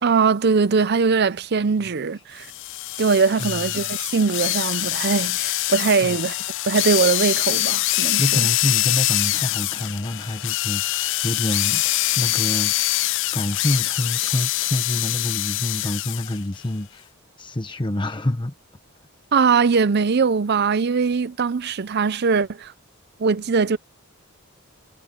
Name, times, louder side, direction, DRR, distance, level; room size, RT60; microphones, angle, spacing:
voice 1, 0.0-2.5 3.0-6.3 6.7-8.4 19.3-22.7 23.2-23.8, right 5 dB, 50° right, 0.5 m, -21 dB
voice 2, 1.8-2.2 3.4-3.9 6.0-6.2 8.2-17.1 17.4-18.5, left 1 dB, 20° left, 1.0 m, -27 dB
sound 1, 2.4-16.4, left 17 dB, 55° left, 0.4 m, -24 dB
head